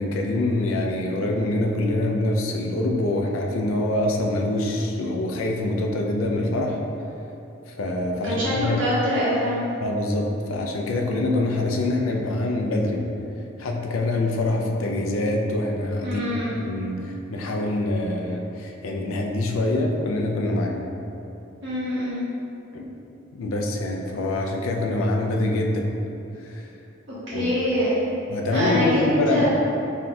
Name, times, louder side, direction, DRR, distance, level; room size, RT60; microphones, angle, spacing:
voice 1, 0.0-6.8 7.7-8.8 9.8-13.0 13.6-20.7 22.7-22.9 23.3-25.9 26.4-26.7 27.3-27.5 28.3-29.4, left 2 dB, 85° left, 1 dB, 0.4 m, -25 dB
voice 2, 8.2-9.6 16.0-16.5 21.6-22.2 27.3-28.1 28.5-29.4, equal, 65° right, -10 dB, 1.3 m, -24 dB
4.1 x 3.5 x 2.3 m, 2.8 s
head